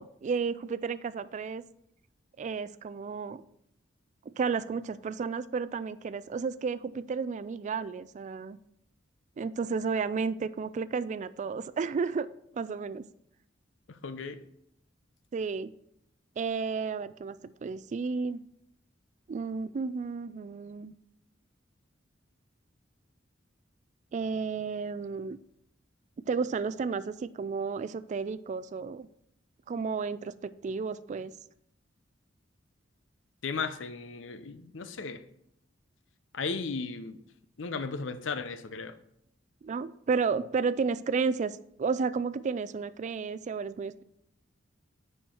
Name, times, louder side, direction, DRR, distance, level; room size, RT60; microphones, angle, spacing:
voice 1, 0.0-1.6 2.4-3.4 4.3-8.6 9.4-13.1 15.3-15.7 16.4-18.4 19.3-20.9 24.1-25.4 26.3-29.1 29.7-31.3 39.6-44.0, right 5 dB, 40° right, 0.3 m, -32 dB
voice 2, 13.9-14.4 33.4-35.2 36.3-37.2 37.6-38.9, left 4 dB, 80° left, 0.6 m, -35 dB
10.0 x 4.5 x 4.3 m
head